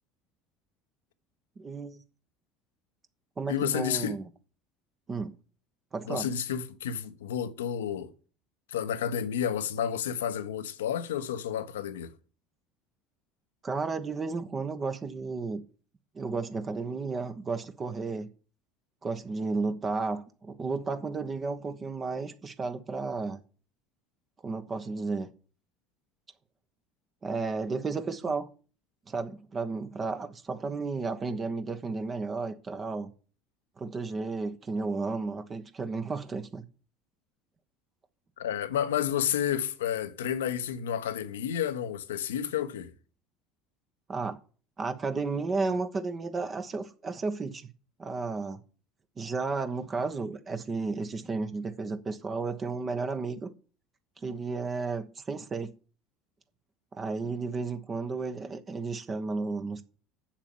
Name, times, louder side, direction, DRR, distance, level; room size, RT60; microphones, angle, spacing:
voice 1, 1.6-2.0 3.4-4.3 5.1-5.3 5.9-6.3 13.6-15.6 16.1-18.3 19.0-23.4 24.4-25.3 27.2-28.5 29.1-33.1 33.8-36.6 44.1-44.4 44.8-47.7 48.0-48.6 49.2-53.5 54.2-55.7 56.9-59.8, right 4 dB, 30° right, 1.1 m, -33 dB
voice 2, 3.5-4.2 6.1-8.1 8.7-12.1 38.4-42.9, left 9 dB, 70° left, 0.9 m, -31 dB
7.4 x 7.3 x 7.0 m
figure-of-eight pair, 65°, 0 cm